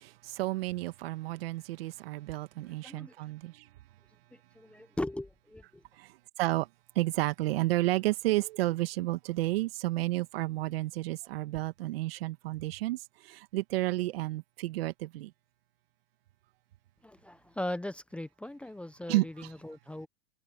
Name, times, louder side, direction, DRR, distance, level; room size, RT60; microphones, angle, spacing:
voice 1, 0.0-3.7 6.0-6.7 7.0-15.3 19.1-19.3, right 18 dB, 60° right, 1.8 m, -31 dB
voice 2, 2.6-3.1 4.3-5.8 17.0-20.1, left 1 dB, 5° left, 1.1 m, -39 dB
hypercardioid pair, 130°, 33 cm